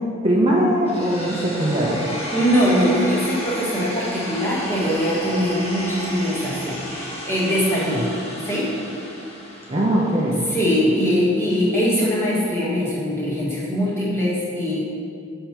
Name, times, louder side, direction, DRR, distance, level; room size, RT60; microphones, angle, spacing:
voice 1, 0.2-2.0 9.7-10.4, right 1 dB, 25° right, -4 dB, 0.7 m, -20 dB
sound 1, 0.9-10.9, equal, 30° left, 1.3 m, -33 dB
voice 2, 2.3-8.1 8.4-8.7 10.5-14.8, equal, 10° left, -7 dB, 1.5 m, -22 dB
7.2 x 4.5 x 6.0 m, 2.5 s
head